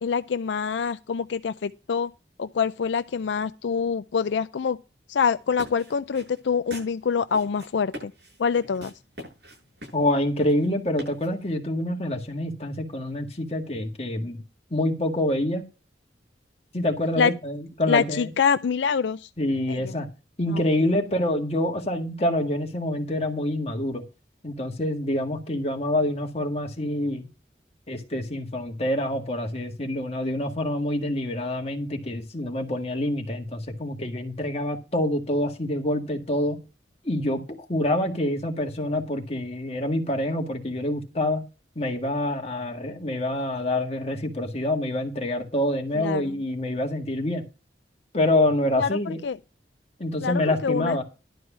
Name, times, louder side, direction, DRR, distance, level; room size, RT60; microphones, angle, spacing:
voice 1, 0.0-2.1 2.4-4.8 5.1-8.1 8.4-8.9 17.2-17.3 17.9-19.3 19.7-19.9 20.5-20.6 45.9-46.4 48.8-49.4 50.2-51.0, left 6 dB, 80° left, 0.4 m, -25 dB
sound 1, 5.4-11.6, equal, 65° right, 7.6 m, -44 dB
voice 2, 9.9-14.4 14.7-15.6 16.7-18.3 19.4-20.1 20.4-24.0 24.4-27.3 27.9-36.6 37.0-41.4 41.8-47.4 48.1-49.2 50.0-51.0, left 1 dB, 35° left, 1.8 m, -26 dB
11.5 x 4.7 x 7.2 m
head